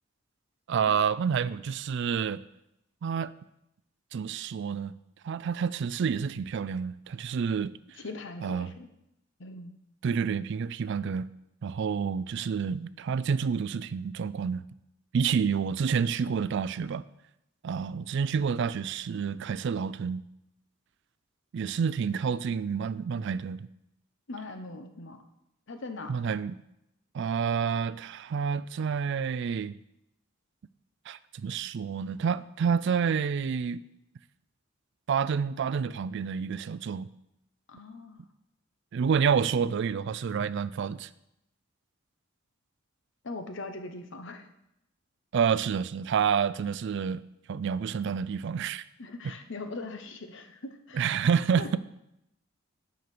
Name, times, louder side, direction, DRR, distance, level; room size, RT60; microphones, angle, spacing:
voice 1, 0.7-2.4 3.0-3.3 4.1-4.9 5.2-8.0 8.4-8.7 10.0-11.3 11.6-14.6 15.1-17.0 17.6-20.2 21.5-23.7 26.1-26.6 27.1-29.8 31.1-33.8 35.1-37.1 38.9-41.1 45.3-47.2 47.5-48.8 50.9-51.8, right 6 dB, 60° right, 0.3 m, -29 dB
voice 2, 8.0-8.9 9.4-9.7 24.3-25.2 25.7-26.1 37.7-38.2 43.2-44.5 49.0-51.1 51.6-51.8, left 2 dB, 60° left, 0.9 m, -41 dB
9.5 x 5.2 x 6.0 m
head